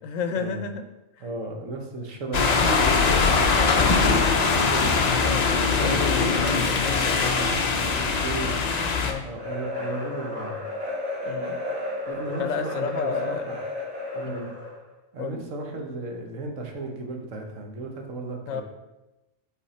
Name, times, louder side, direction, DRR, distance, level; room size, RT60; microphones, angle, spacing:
voice 1, 0.0-0.8 1.2-1.3 5.1-7.1 9.0-9.2 11.2-11.6 12.4-13.5 14.2-14.5 15.2-15.5 15.7-15.8 18.5-18.6, left 6 dB, 80° left, 8 dB, 1.0 m, -32 dB
voice 2, 1.2-5.1 5.7-8.5 9.2-10.6 12.1-13.6 14.1-14.5 15.1-18.6, right 2 dB, 75° right, 2 dB, 1.4 m, -34 dB
sound 1, 2.3-9.1, left 4 dB, 50° left, 0.5 m, -22 dB
sound 2, 9.4-14.8, left 2 dB, 60° right, 2.1 m, -32 dB
7.6 x 3.7 x 4.2 m, 1.0 s
omnidirectional pair, 1.4 m